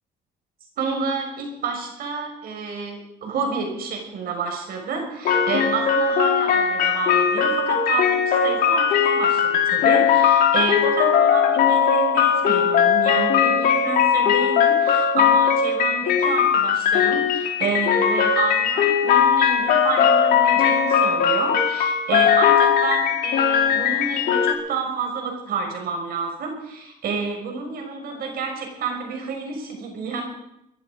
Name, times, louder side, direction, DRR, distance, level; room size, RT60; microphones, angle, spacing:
voice 1, 0.8-30.2, right 4 dB, 65° right, 2 dB, 6.1 m, -29 dB
sound 1, 5.2-24.5, left 7 dB, 60° left, 3.8 m, -19 dB
23.0 x 11.5 x 5.2 m, 0.82 s
cardioid pair, 110°, 17 cm